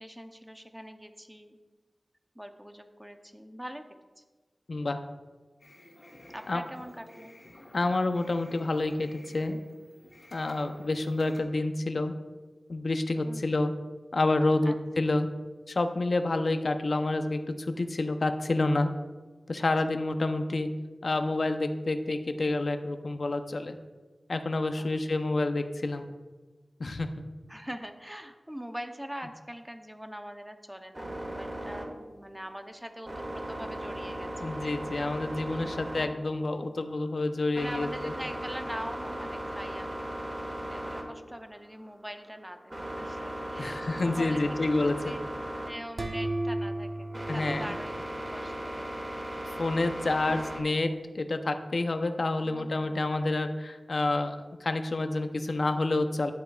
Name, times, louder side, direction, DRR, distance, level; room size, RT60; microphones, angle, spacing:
voice 1, 0.0-1.6 2.3-3.8 4.2-4.3 6.3-7.3 13.2-13.4 14.6-14.8 19.6-19.7 24.8-24.9 27.5-34.3 35.4-35.8 37.5-40.2 40.7-44.6 45.0-45.2 45.7-48.9 52.4-53.0, equal, 10° right, 6 dB, 0.7 m, -43 dB
voice 2, 4.7-5.0 6.5-6.6 7.7-9.6 10.3-12.1 12.7-13.7 14.1-15.3 15.7-18.9 19.5-20.7 21.0-23.7 24.3-26.1 26.8-27.1 34.4-38.1 43.6-45.1 47.3-47.7 49.4-56.3, left 2 dB, 65° left, 7 dB, 0.6 m, -28 dB
sound 1, 5.6-11.4, left 1 dB, 50° left, 1.7 m, -52 dB
sound 2, 30.9-50.6, right 1 dB, 30° right, 1.6 m, -38 dB
sound 3, 46.0-48.7, right 1 dB, 55° right, 0.8 m, -35 dB
11.5 x 7.9 x 2.4 m, 1.3 s
wide cardioid pair, 80°, 0 cm